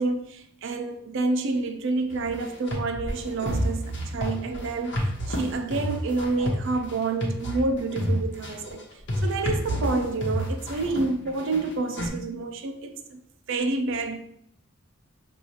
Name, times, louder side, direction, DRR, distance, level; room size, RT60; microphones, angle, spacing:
voice 1, 0.0-8.8 9.2-13.2 13.5-14.2, right 3 dB, 65° right, 0.5 m, -28 dB
sound 1, 2.1-12.1, equal, 60° left, 1.0 m, -29 dB
6.2 x 2.4 x 2.8 m
head